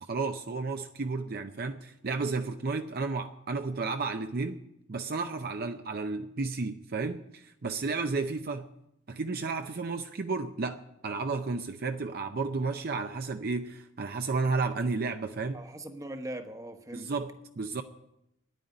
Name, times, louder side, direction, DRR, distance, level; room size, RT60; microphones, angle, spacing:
voice 1, 0.0-4.6 4.9-8.7 9.1-15.6 16.9-17.8, right 4 dB, 50° right, 6 dB, 0.6 m, -32 dB
voice 2, 15.5-17.2, right 1 dB, 15° right, 6 dB, 1.1 m, -40 dB
10.0 x 9.2 x 9.3 m, 0.81 s
head